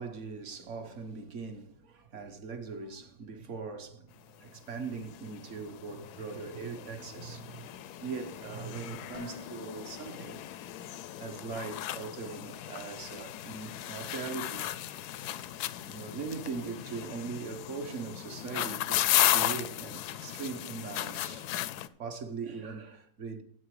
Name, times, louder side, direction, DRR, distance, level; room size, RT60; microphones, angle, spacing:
voice 1, 0.0-4.1 4.4-10.4 11.2-14.7 15.4-15.5 15.8-21.5 22.0-23.4, right 5 dB, 45° right, 1.1 m, -40 dB
sound 1, 4.4-4.5 4.7-21.9, left 13 dB, 75° left, 0.9 m, -35 dB
Dishes pots and pans, 9.1-11.2, left 4 dB, 55° left, 0.5 m, -51 dB
10.5 x 8.0 x 4.8 m
omnidirectional pair, 2.1 m